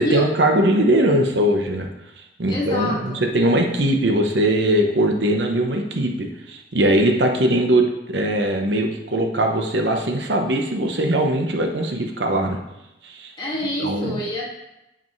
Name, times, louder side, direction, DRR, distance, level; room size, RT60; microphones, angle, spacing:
voice 1, 0.0-1.9 2.4-12.6 13.0-13.3 13.8-14.2, right 1 dB, 80° right, 3 dB, 0.9 m, -20 dB
voice 2, 2.5-3.2 13.4-14.4, left 1 dB, 25° left, -5 dB, 2.0 m, -26 dB
10.5 x 5.0 x 3.2 m, 0.93 s
head